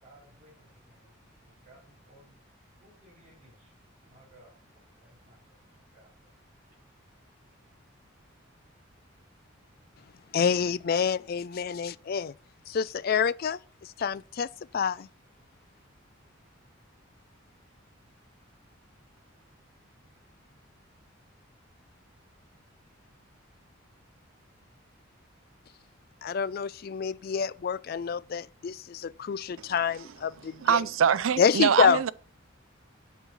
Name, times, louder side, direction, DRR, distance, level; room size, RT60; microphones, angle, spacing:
voice 1, 0.0-2.4 2.8-6.3, right 1 dB, 35° right, 4.2 m, -59 dB
voice 2, 10.3-12.3 12.7-14.5 14.7-15.1 26.2-30.8 31.4-32.0, left 6 dB, 45° left, 0.3 m, -27 dB
voice 3, 30.6-32.1, right 7 dB, 80° right, 0.5 m, -24 dB
8.2 x 5.5 x 7.1 m
head